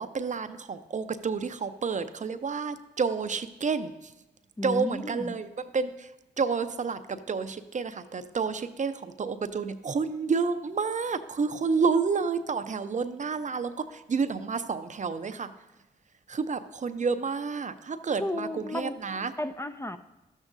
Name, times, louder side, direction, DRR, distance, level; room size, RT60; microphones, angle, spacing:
voice 1, 0.0-4.1 4.6-6.1 6.4-15.5 16.3-19.3, right 5 dB, 45° right, 11 dB, 0.6 m, -30 dB
voice 2, 4.6-5.3 18.2-18.9 19.4-20.0, left 1 dB, 15° left, 9 dB, 0.5 m, -33 dB
12.5 x 7.2 x 2.6 m, 1.0 s
supercardioid pair, 40°, 18 cm